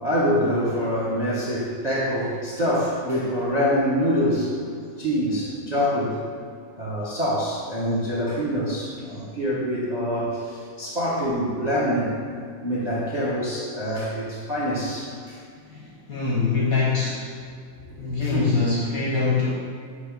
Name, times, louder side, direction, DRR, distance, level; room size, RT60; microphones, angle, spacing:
voice 1, 0.0-4.6 5.0-6.2 6.8-12.2 12.6-15.4 17.9-18.6, equal, 40° right, -7 dB, 0.5 m, -25 dB
voice 2, 15.7-17.3 18.0-19.5, left 4 dB, 60° left, -5 dB, 0.9 m, -24 dB
6.9 x 3.0 x 5.0 m, 2.3 s
omnidirectional pair, 2.3 m